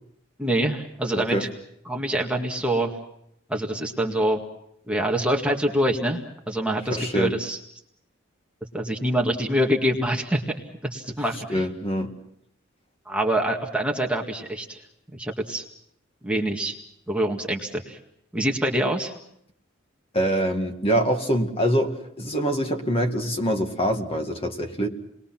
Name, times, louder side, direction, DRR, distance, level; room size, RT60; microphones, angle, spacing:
voice 1, 0.4-1.5 1.9-3.0 3.5-4.4 4.9-7.6 8.7-10.4 10.9-11.7 13.1-14.8 15.1-15.6 16.2-16.8 17.1-18.0 18.3-19.1, right 1 dB, 5° right, 0 dB, 2.0 m, -25 dB
voice 2, 1.1-1.4 6.9-7.3 11.5-12.1 20.1-24.9, equal, 30° left, 4 dB, 2.1 m, -24 dB
29.5 x 21.5 x 6.0 m, 0.75 s
head